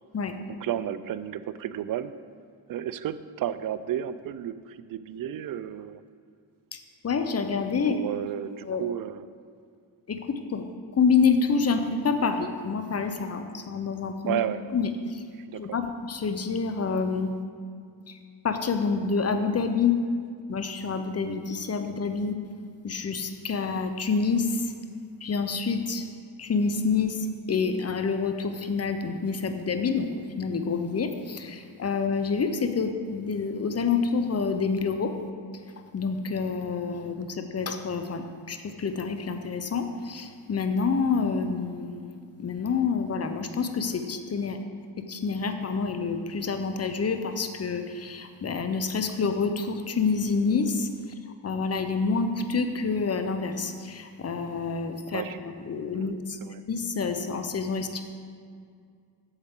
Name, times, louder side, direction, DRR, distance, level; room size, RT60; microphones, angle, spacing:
voice 1, 0.5-2.1 2.7-6.0 7.9-9.3 14.3-14.6 15.4-15.8 55.1-55.4 55.9-56.1 56.4-56.6, right 10 dB, 50° right, 14 dB, 0.4 m, -32 dB
voice 2, 6.7-8.0 8.6-8.8 10.1-14.4 14.7-15.2 15.6-17.3 18.1-18.2 18.4-20.0 20.5-22.4 22.8-24.7 25.2-26.0 26.4-35.1 35.9-44.6 45.0-50.9 51.4-56.4 56.7-58.0, left 5 dB, 35° left, 7 dB, 0.7 m, -28 dB
8.0 x 7.1 x 3.7 m, 2.2 s
cardioid pair, 75°, 45 cm